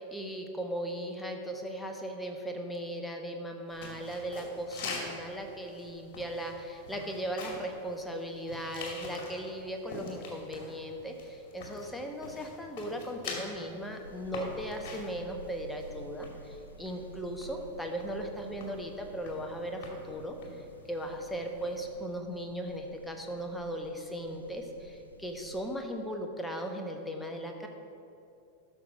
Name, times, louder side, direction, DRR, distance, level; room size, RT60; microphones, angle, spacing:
voice 1, 0.0-27.7, equal, 5° left, 3 dB, 1.1 m, -38 dB
sound 1, 3.7-22.0, left 3 dB, 45° left, 2.3 m, -46 dB
sound 2, 14.0-25.8, equal, 90° left, 0.7 m, -51 dB
12.0 x 6.2 x 5.0 m, 2.6 s
figure-of-eight pair, 90°, 0 cm